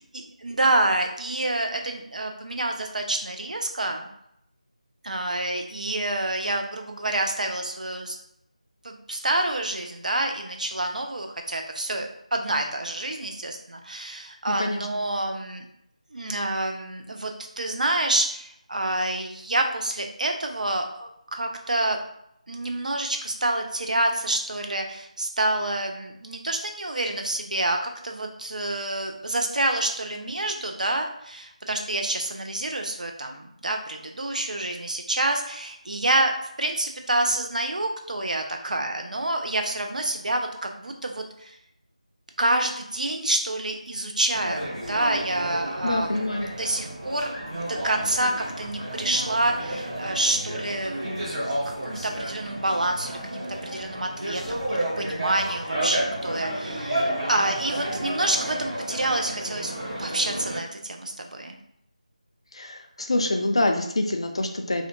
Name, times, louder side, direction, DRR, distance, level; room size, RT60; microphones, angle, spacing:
voice 1, 0.1-4.1 5.0-8.2 8.8-15.6 16.1-22.0 22.5-36.3 36.6-41.6 42.4-51.0 51.5-59.7 60.0-61.6, right 1 dB, 80° right, 3 dB, 0.5 m, -28 dB
sound 1, 44.3-60.6, right 1 dB, 40° right, 1.4 m, -31 dB
voice 2, 45.8-46.5 62.5-64.9, left 2 dB, 45° left, 4 dB, 0.3 m, -26 dB
2.5 x 2.1 x 2.9 m, 0.75 s
figure-of-eight pair, 175°, 4 cm